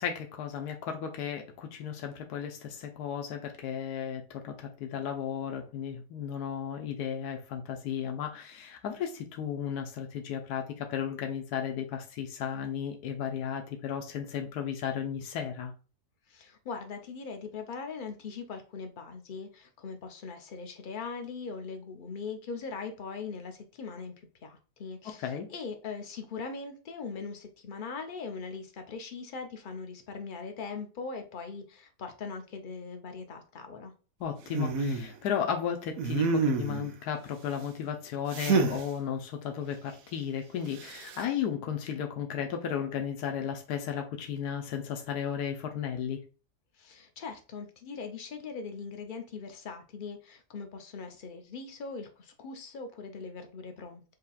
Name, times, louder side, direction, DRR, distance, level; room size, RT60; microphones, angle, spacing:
voice 1, 0.0-15.7 25.0-25.5 34.2-46.2, left 8 dB, 90° left, 1.2 m, -34 dB
voice 2, 16.3-24.1 24.4-33.9 46.8-54.1, left 4 dB, 65° left, 0.5 m, -40 dB
sound 1, 34.5-35.1 36.0-36.9 38.3-38.8 40.8-41.2, right 4 dB, 70° right, 1.0 m, -28 dB
6.4 x 2.8 x 2.3 m
omnidirectional pair, 1.6 m